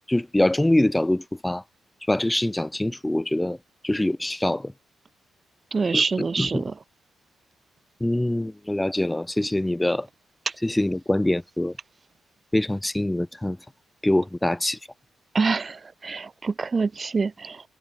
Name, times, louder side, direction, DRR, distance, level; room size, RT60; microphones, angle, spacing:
voice 1, 0.1-1.6 2.1-3.6 3.8-4.7 5.9-6.0 6.4-6.6 8.0-10.1 10.6-11.7 12.5-13.6 14.0-14.8, left 1 dB, 10° left, 4.6 m, -24 dB
voice 2, 5.7-6.7 15.3-17.6, right 4 dB, 40° right, 4.4 m, -26 dB
hypercardioid pair, 45°, 0 cm